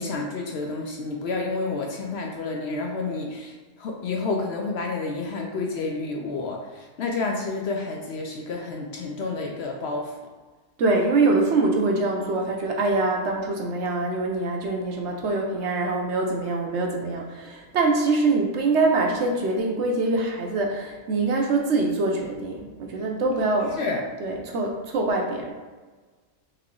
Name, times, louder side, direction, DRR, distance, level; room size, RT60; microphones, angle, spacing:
voice 1, 0.0-10.1 23.8-24.0, left 3 dB, 65° left, 0 dB, 0.7 m, -30 dB
voice 2, 10.8-23.8 24.2-25.5, right 3 dB, 65° right, 1 dB, 0.9 m, -24 dB
3.5 x 3.3 x 3.7 m, 1.3 s
omnidirectional pair, 1.4 m